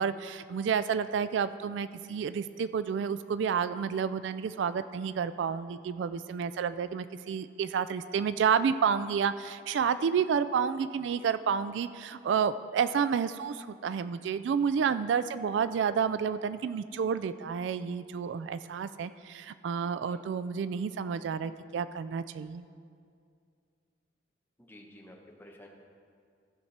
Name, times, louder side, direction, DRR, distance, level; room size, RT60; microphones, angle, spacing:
voice 1, 0.0-22.6, right 7 dB, 70° right, 13 dB, 0.3 m, -30 dB
voice 2, 24.6-25.7, left 1 dB, 10° left, -1 dB, 1.1 m, -52 dB
15.0 x 6.0 x 4.3 m, 2.3 s
head